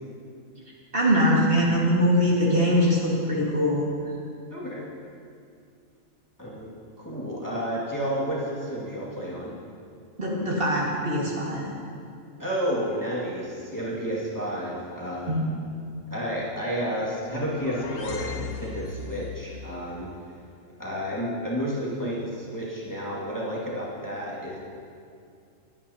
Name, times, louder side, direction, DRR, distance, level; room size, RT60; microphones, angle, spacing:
voice 1, 0.9-3.9 10.2-11.7 15.3-15.4, equal, 45° right, -5 dB, 2.0 m, -22 dB
voice 2, 4.5-4.9 6.4-6.7 7.0-9.5 12.4-15.3 16.1-20.1 20.8-24.6, equal, 15° left, -7 dB, 2.0 m, -31 dB
sound 1, 17.1-19.4, left 4 dB, 65° left, 1.2 m, -37 dB
20.5 x 9.1 x 2.8 m, 2.4 s
omnidirectional pair, 1.4 m